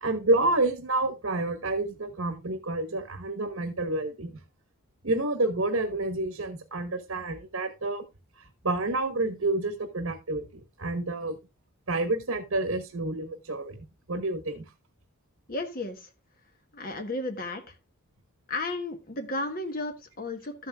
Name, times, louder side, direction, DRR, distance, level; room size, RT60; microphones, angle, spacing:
voice 1, 0.0-4.3 5.0-8.0 8.4-11.4 11.9-13.8 14.1-14.6, right 2 dB, 70° right, 7 dB, 1.2 m, -29 dB
voice 2, 15.5-16.1 16.7-17.6 18.5-20.7, left 2 dB, 40° left, 6 dB, 1.1 m, -33 dB
13.5 x 7.6 x 2.3 m, 0.26 s
head